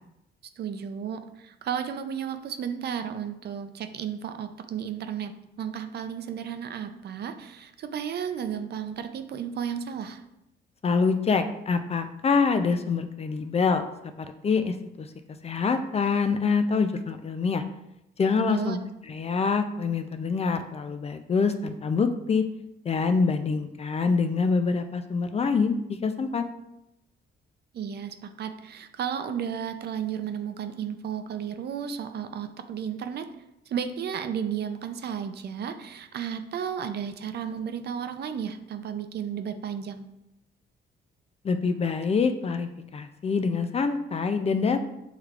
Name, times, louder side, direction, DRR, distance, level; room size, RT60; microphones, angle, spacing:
voice 1, 0.6-10.2 18.4-18.8 27.7-33.3 33.7-40.1, right 8 dB, 55° right, 8 dB, 0.5 m, -33 dB
voice 2, 10.8-15.1 15.4-17.6 18.2-18.8 19.1-22.4 22.8-26.4 41.4-44.8, left 5 dB, 30° left, 9 dB, 0.4 m, -25 dB
6.4 x 3.2 x 2.4 m, 0.86 s
cardioid pair, 90°, 20 cm